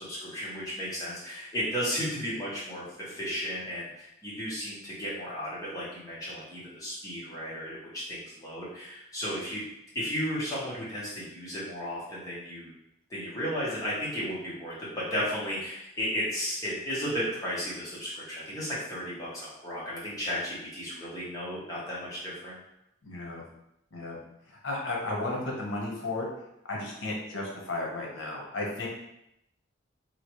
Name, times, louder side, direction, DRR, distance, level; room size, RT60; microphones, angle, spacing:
voice 1, 0.0-9.6 9.9-12.7 13.1-22.6, equal, 15° left, -8 dB, 0.9 m, -34 dB
voice 2, 23.0-23.4 23.9-24.2 24.5-26.3 26.7-28.9, left 2 dB, 80° left, -2 dB, 0.8 m, -34 dB
2.9 x 2.4 x 3.0 m, 0.81 s
head